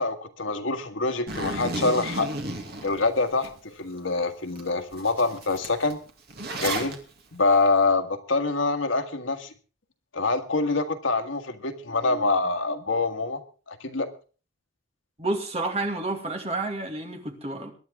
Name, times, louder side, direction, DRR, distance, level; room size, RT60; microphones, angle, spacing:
voice 1, 0.0-2.3 2.8-6.0 6.6-7.0 7.3-9.5 10.1-13.4 13.7-14.1, left 3 dB, 85° left, 7 dB, 1.7 m, -25 dB
Zipper (clothing), 1.3-3.5 4.0-4.1 4.6-4.7 4.9-6.9, right 2 dB, 55° right, 2.5 m, -33 dB
voice 2, 15.2-17.7, right 2 dB, 35° right, 4 dB, 2.4 m, -30 dB
23.0 x 10.5 x 3.7 m, 0.37 s
head